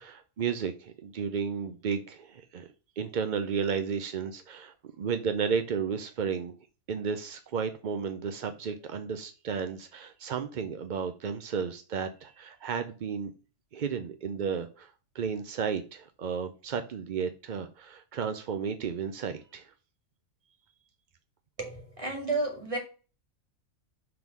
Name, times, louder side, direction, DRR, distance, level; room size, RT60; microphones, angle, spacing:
voice 1, 0.0-2.7 3.0-6.5 6.9-13.3 13.7-19.7, right 6 dB, 55° right, 0.5 m, -33 dB
voice 2, 21.6-22.8, right 3 dB, 25° right, 2.1 m, -32 dB
6.1 x 3.6 x 6.0 m
omnidirectional pair, 1.4 m